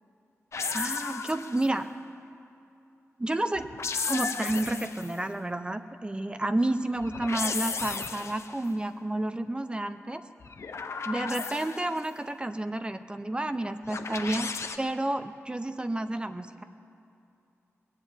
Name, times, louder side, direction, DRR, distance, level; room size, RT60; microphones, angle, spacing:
sound 1, 0.5-1.8 3.6-5.2 7.0-8.6 10.4-12.1 13.9-14.8, left 5 dB, 65° left, 0.8 m, -34 dB
voice 1, 0.7-1.9 3.2-3.7 4.0-10.2 11.1-16.6, right 1 dB, 20° right, 9 dB, 0.5 m, -30 dB
20.5 x 7.3 x 9.0 m, 2.6 s
wide cardioid pair, 100°, 5 cm